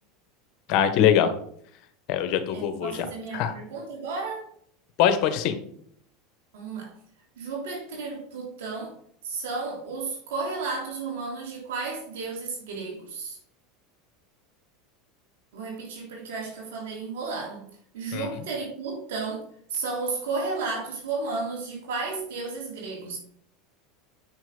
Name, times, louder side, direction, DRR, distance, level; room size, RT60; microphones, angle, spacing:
voice 1, 0.7-1.3 2.1-3.0 3.3-3.5 5.0-5.6 18.1-18.4, left 9 dB, 60° left, 9 dB, 1.3 m, -22 dB
voice 2, 2.5-4.5 6.5-6.9 7.4-9.0 9.2-13.4 15.5-17.6 17.9-23.2, right 4 dB, 75° right, -1 dB, 3.3 m, -33 dB
8.0 x 6.2 x 5.5 m, 0.63 s
hypercardioid pair, 90°, 0 cm